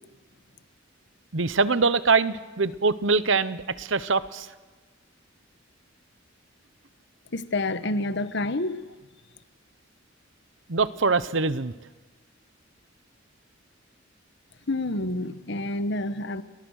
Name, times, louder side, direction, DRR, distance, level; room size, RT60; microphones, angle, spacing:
voice 1, 1.3-4.5 10.7-11.7, right 4 dB, 70° right, 1.0 m, -23 dB
voice 2, 7.3-8.8 14.7-16.4, left 2 dB, 60° left, 1.2 m, -28 dB
30.0 x 24.0 x 6.6 m
head